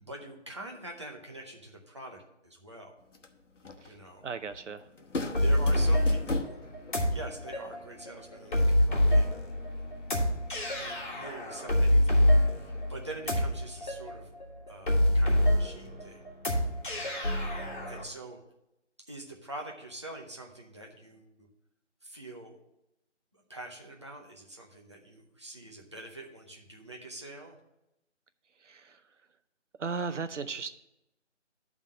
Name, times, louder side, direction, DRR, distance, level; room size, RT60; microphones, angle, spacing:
voice 1, 0.0-2.9 3.8-4.2 5.0-5.1 5.4-6.6 7.1-9.3 10.7-14.3 14.7-16.2 16.9-17.3 17.9-18.4 19.1-21.5 22.0-22.6 23.3-27.6, right 2 dB, 25° right, -1 dB, 0.7 m, -45 dB
sound 1, 3.0-13.5, left 2 dB, 80° left, 1.1 m, -42 dB
voice 2, 4.2-4.8 28.6-29.0 29.8-30.7, right 5 dB, 75° right, 11 dB, 0.7 m, -35 dB
sound 2, 5.3-18.0, left 1 dB, 40° left, 1.7 m, -26 dB
10.0 x 3.6 x 7.3 m, 0.86 s
figure-of-eight pair, 170°, 36 cm